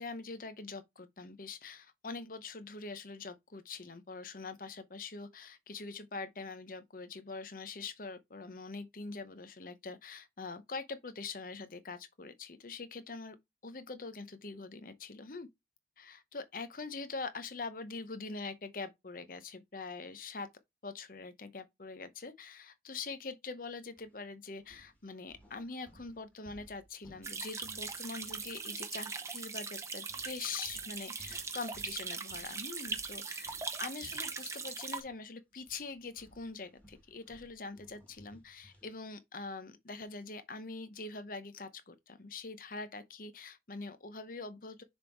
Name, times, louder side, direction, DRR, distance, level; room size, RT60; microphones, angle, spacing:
voice 1, 0.0-13.4 13.6-15.5 16.0-20.5 20.8-44.8, left 4 dB, 50° left, 0.8 m, -44 dB
sound 1, 24.0-24.2 24.6-29.1 29.3-29.6 30.1-35.2 35.5-39.0, equal, 10° left, 1.9 m, -61 dB
sound 2, 27.2-35.0, right 4 dB, 15° right, 0.7 m, -40 dB
6.6 x 3.6 x 4.5 m
head